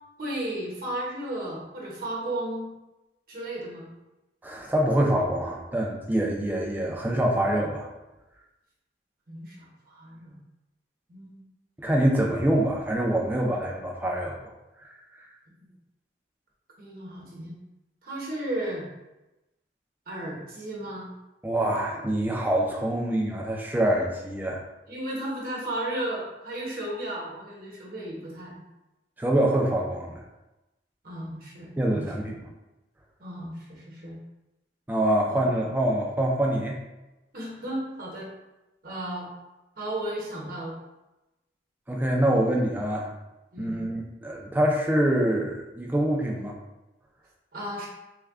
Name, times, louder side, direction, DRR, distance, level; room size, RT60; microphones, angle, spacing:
voice 1, 0.2-2.8 3.3-3.9 9.3-10.4 11.1-11.4 16.8-17.5 18.0-18.8 20.1-21.1 24.9-28.6 31.0-32.3 33.2-34.2 35.3-35.4 37.3-38.3 38.8-39.3 39.8-40.7 43.5-43.8 47.5-47.9, right 1 dB, 50° right, -3 dB, 1.0 m, -34 dB
voice 2, 4.4-7.9 11.8-14.4 21.4-24.6 29.2-30.2 31.8-32.5 34.9-36.8 41.9-43.1 43.6-46.6, right 1 dB, 10° right, -1 dB, 0.4 m, -25 dB
3.3 x 2.3 x 3.5 m, 1.0 s
head